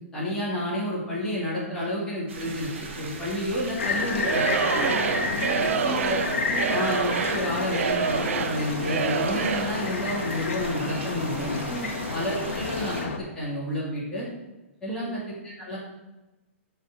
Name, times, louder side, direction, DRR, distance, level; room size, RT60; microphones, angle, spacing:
voice 1, 0.1-2.7 2.9-4.5 5.6-6.2 6.7-11.5 12.1-14.3 14.8-15.8, left 1 dB, 10° left, -8 dB, 2.7 m, -30 dB
sound 1, 2.3-13.0, right 3 dB, 65° right, 1.9 m, -40 dB
sound 2, 3.8-13.2, left 4 dB, 90° left, 1.5 m, -30 dB
Singing / Crowd, 4.2-9.8, right 7 dB, 80° right, 0.6 m, -27 dB
voice 2, 4.7-6.1 6.5-6.8 11.7-12.0 14.9-15.2, right 4 dB, 10° right, 3 dB, 0.4 m, -37 dB
7.2 x 5.7 x 6.2 m, 1.0 s
hypercardioid pair, 175°, 7 cm